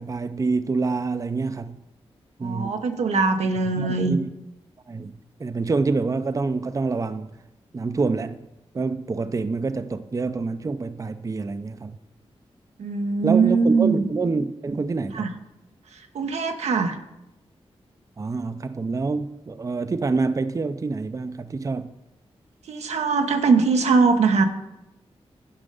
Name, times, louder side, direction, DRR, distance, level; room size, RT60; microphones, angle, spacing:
voice 1, 0.0-1.8 2.4-2.8 3.7-4.3 4.9-7.4 7.7-8.4 8.7-12.0 13.2-15.4 18.2-21.9, right 4 dB, 30° right, 0.5 m, -27 dB
voice 2, 2.4-4.2 12.8-14.1 15.1-15.3 16.1-17.0 22.7-24.4, right 4 dB, 90° right, 0.9 m, -21 dB
11.0 x 5.1 x 5.4 m
cardioid pair, 65°, 11 cm